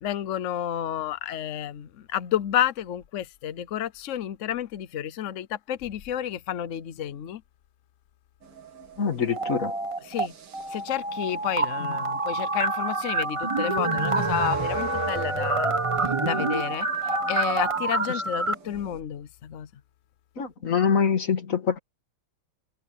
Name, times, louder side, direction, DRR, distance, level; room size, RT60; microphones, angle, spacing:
voice 1, 0.0-7.4 10.1-10.3 10.7-15.8 16.2-19.7, left 11 dB, 85° left, 0.6 m, -30 dB
sound 1, 8.4-19.0, right 3 dB, 85° right, 3.3 m, -44 dB
voice 2, 9.0-9.8 20.4-21.8, left 6 dB, 40° left, 2.0 m, -24 dB
sound 2, 9.3-10.3 10.5-18.5, right 3 dB, 25° right, 0.8 m, -27 dB
omnidirectional pair, 2.3 m